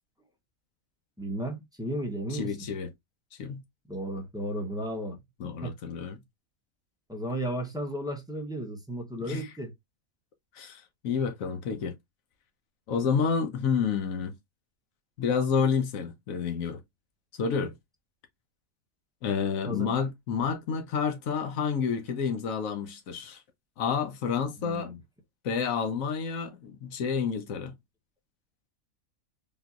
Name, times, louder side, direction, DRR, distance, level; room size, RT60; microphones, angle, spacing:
voice 1, 1.2-2.5 3.9-5.2 5.6-5.7 7.1-9.7 19.6-19.9 24.6-25.0, right 1 dB, 5° right, 0.6 m, -34 dB
voice 2, 2.3-2.9 3.4-3.6 5.4-6.2 9.3-9.5 10.5-11.9 12.9-14.3 15.2-16.8 17.3-17.7 19.2-23.4 23.8-24.9 25.4-27.8, left 6 dB, 75° left, 1.1 m, -29 dB
3.6 x 2.8 x 2.4 m
omnidirectional pair, 1.4 m